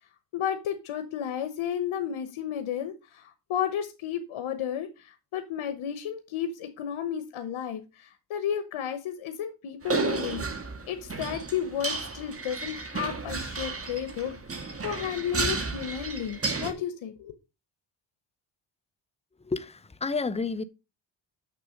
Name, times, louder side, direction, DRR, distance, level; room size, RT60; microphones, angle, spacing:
voice 1, 0.3-17.3, left 9 dB, 85° left, 1.1 m, -33 dB
sound 1, 9.8-16.7, right 3 dB, 30° right, 1.5 m, -32 dB
voice 2, 19.4-20.6, left 4 dB, 15° left, 0.7 m, -30 dB
6.7 x 6.4 x 5.1 m
cardioid pair, 65°, 47 cm